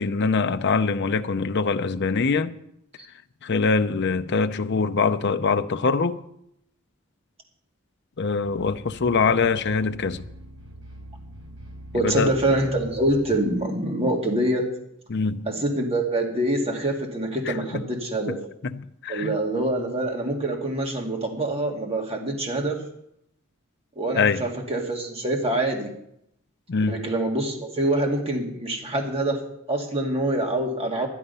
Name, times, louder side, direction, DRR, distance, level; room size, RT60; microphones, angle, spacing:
voice 1, 0.0-2.5 3.4-6.2 8.2-10.2 12.0-12.3 15.1-15.4 17.5-17.8 18.6-19.3 24.2-24.4 26.7-27.0, left 4 dB, 55° left, 0.6 m, -23 dB
sound 1, 8.4-13.6, right 1 dB, 90° right, 5.1 m, -43 dB
voice 2, 11.9-14.7 15.5-18.4 19.1-22.8 24.0-25.9 26.9-29.4 29.7-31.1, right 1 dB, 30° right, 2.1 m, -25 dB
11.5 x 11.0 x 5.5 m
head